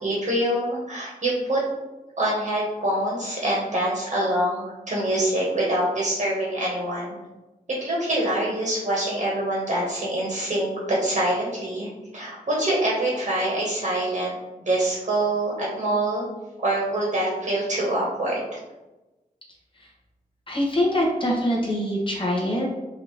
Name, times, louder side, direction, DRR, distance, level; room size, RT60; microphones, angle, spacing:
voice 1, 0.0-1.6 2.2-7.1 7.7-14.3 14.6-16.3 16.6-18.6, right 1 dB, 55° right, -4 dB, 1.3 m, -25 dB
voice 2, 20.5-22.7, equal, 35° left, -3 dB, 1.3 m, -24 dB
5.7 x 2.8 x 3.1 m, 1.1 s
wide cardioid pair, 115°, 15 cm